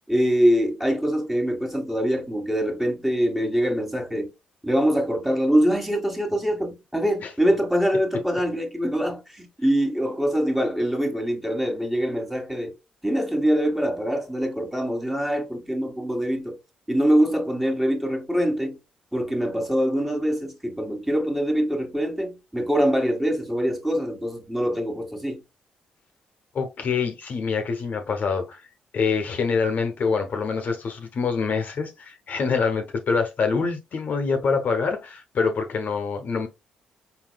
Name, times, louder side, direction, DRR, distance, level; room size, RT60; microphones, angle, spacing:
voice 1, 0.1-4.3 4.6-12.7 13.0-16.6 16.9-18.8 19.1-25.4, equal, 5° right, 1.5 m, -24 dB
voice 2, 26.5-28.7 28.9-36.5, left 5 dB, 55° left, 0.9 m, -25 dB
4.2 x 3.9 x 2.3 m
supercardioid pair, 50°, 3 cm